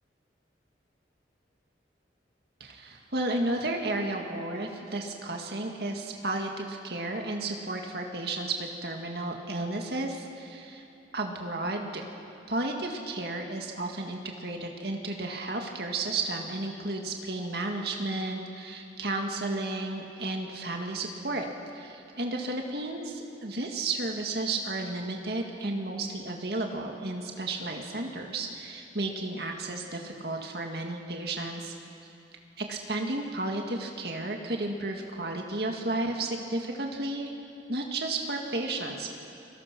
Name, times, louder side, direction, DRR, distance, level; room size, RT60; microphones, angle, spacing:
voice 1, 2.6-10.8 11.1-12.0 12.5-21.5 21.7-31.7 32.6-37.3 37.7-39.2, right 2 dB, 60° right, 2 dB, 2.0 m, -33 dB
29.5 x 21.5 x 6.1 m, 2.8 s
head